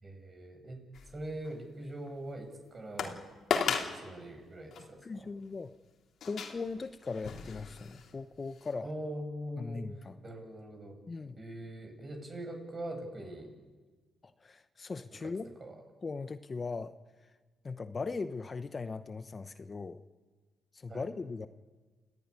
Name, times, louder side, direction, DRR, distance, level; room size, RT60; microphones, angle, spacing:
voice 1, 0.0-3.2 3.9-5.3 8.8-11.0 11.4-13.6 15.2-15.3 15.6-15.8 20.9-21.0, right 1 dB, 35° right, 4 dB, 6.7 m, -43 dB
sound 1, 0.9-1.5 2.1-2.2 3.0-3.2 3.5-4.0 4.7-4.8 6.2-8.1 8.6-8.7, left 6 dB, 65° left, 3.0 m, -35 dB
voice 2, 3.6-4.0 5.0-5.7 6.3-8.9 9.6-10.2 11.1-11.4 14.2-15.5 16.0-16.9 17.6-20.0 20.7-21.5, left 4 dB, 35° left, 11 dB, 0.8 m, -39 dB
29.5 x 14.5 x 9.9 m, 1.3 s
cardioid pair, 90°, 0 cm